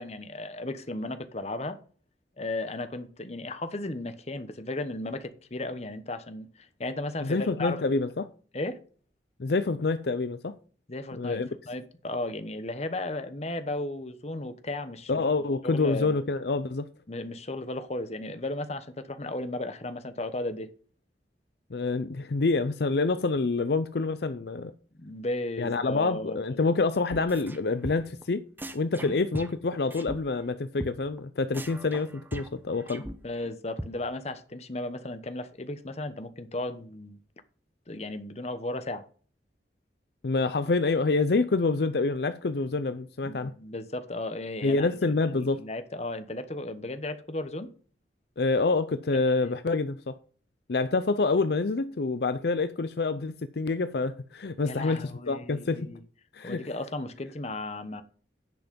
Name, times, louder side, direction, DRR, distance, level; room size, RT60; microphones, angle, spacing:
voice 1, 0.0-1.8 2.4-7.8 8.5-8.8 10.9-15.1 15.6-16.2 17.1-20.7 25.0-26.4 29.0-29.2 32.9-37.2 37.9-39.0 43.2-47.7 49.4-49.5 54.7-56.0 56.4-58.0, left 2 dB, 35° left, 1.0 m, -35 dB
voice 2, 7.2-8.3 9.4-10.5 11.1-11.5 15.1-16.9 21.7-24.7 25.6-28.4 28.7-33.0 40.2-43.5 44.6-45.6 48.4-50.1 50.7-55.9 56.3-56.6, left 3 dB, 65° left, 0.6 m, -27 dB
sound 1, 27.1-27.6 27.8-28.2 28.6-30.2 30.4-30.5 30.8-30.9 31.2-31.3 31.5-33.5 33.8-33.9, right 1 dB, 10° right, 0.9 m, -38 dB
10.5 x 5.9 x 5.3 m
head